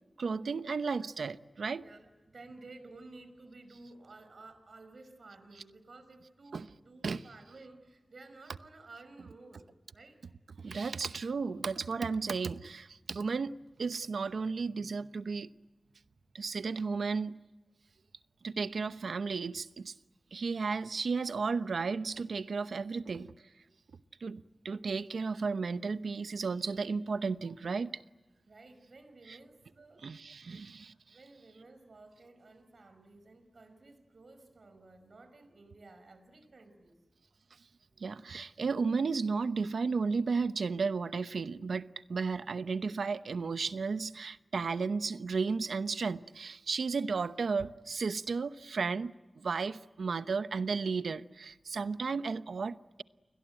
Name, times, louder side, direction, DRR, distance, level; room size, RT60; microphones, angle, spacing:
voice 1, 0.2-1.8 6.5-6.7 7.0-7.2 10.6-15.5 16.3-17.4 18.4-19.9 20.3-23.3 24.2-28.0 29.3-29.4 30.0-30.9 38.0-53.0, right 4 dB, 90° right, 0.8 m, -34 dB
voice 2, 1.8-9.7 9.9-10.2 28.5-30.4 31.1-36.9 50.2-50.4, right 3 dB, 65° right, 5.4 m, -54 dB
29.5 x 22.0 x 9.1 m
wide cardioid pair, 70°, 0 cm